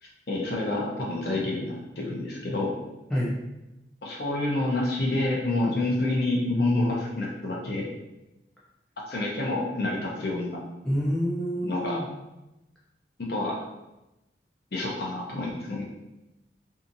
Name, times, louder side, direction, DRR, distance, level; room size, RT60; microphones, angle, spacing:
voice 1, 0.0-2.7 4.0-7.9 9.1-10.6 11.6-12.0 13.2-13.6 14.7-15.8, left 2 dB, 60° left, -2 dB, 0.6 m, -28 dB
voice 2, 10.8-12.1, equal, 5° left, -8 dB, 0.4 m, -27 dB
2.7 x 2.4 x 2.5 m, 0.97 s
head